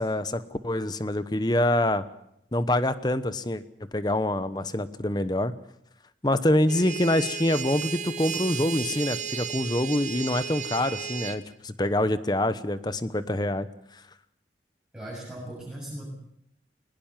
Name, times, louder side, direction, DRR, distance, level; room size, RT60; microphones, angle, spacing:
voice 1, 0.0-2.0 2.5-3.6 3.9-5.5 6.2-13.7, left 1 dB, 25° left, 13 dB, 1.0 m, -25 dB
sound 1, 6.7-11.4, right 7 dB, 40° right, 1.1 m, -34 dB
voice 2, 14.9-16.0, right 1 dB, 5° right, -7 dB, 7.3 m, -38 dB
21.0 x 20.0 x 7.4 m, 0.77 s
head